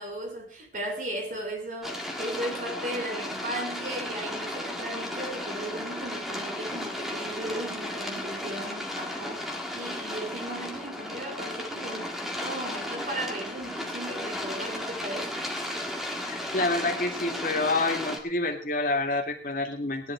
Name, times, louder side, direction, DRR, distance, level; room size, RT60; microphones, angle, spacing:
voice 1, 0.0-9.4 9.7-12.1 12.4-15.3, right 1 dB, 45° right, 3.3 m, -36 dB
sound 1, 1.8-18.2, left 1 dB, ahead, 1.9 m, -34 dB
voice 2, 16.3-20.1, left 2 dB, 50° left, 2.1 m, -28 dB
17.0 x 10.5 x 4.6 m
head